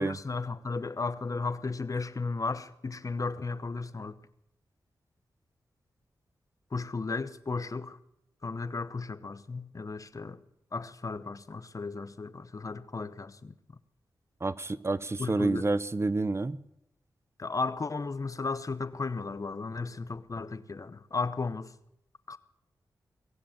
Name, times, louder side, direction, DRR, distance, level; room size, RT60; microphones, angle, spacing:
voice 1, 0.0-4.1 6.7-8.0 8.4-10.4 10.7-13.5 15.2-15.7 17.4-21.7 22.3-22.4, left 4 dB, 40° left, 0.8 m, -34 dB
voice 2, 14.4-16.6, right 3 dB, 30° right, 0.7 m, -29 dB
22.5 x 7.6 x 7.4 m
cardioid pair, 50°, 8 cm